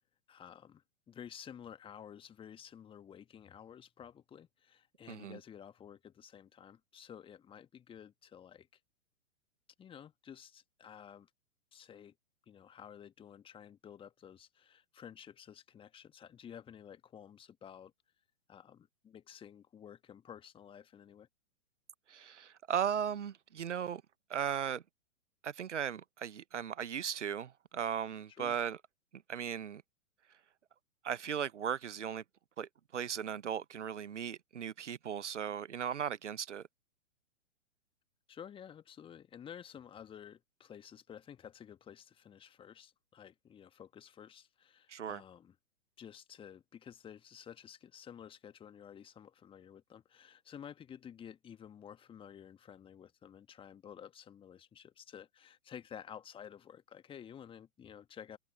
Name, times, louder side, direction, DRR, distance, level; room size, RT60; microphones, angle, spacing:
voice 1, 0.3-8.7 9.8-11.3 11.7-12.1 12.5-17.9 18.5-21.3 28.3-28.6 38.3-45.5 46.0-58.4, left 8 dB, 15° left, 1.7 m, -52 dB
voice 2, 5.1-5.4 22.1-24.0 24.3-24.8 25.4-28.8 29.1-29.8 31.0-32.2 32.6-36.6 44.9-45.2, right 8 dB, 70° right, 0.9 m, -37 dB
figure-of-eight pair, 110°, 38 cm